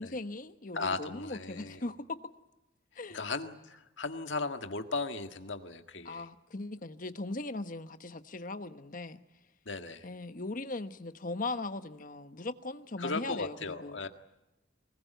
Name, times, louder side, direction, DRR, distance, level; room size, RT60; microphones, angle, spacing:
voice 1, 0.0-2.2 3.0-3.2 6.0-9.2 10.0-13.5 13.8-14.1, left 2 dB, 45° left, 1.1 m, -39 dB
voice 2, 0.7-1.8 3.1-6.3 9.7-10.1 13.0-14.1, left 3 dB, 75° left, 1.7 m, -37 dB
24.5 x 20.5 x 9.2 m
head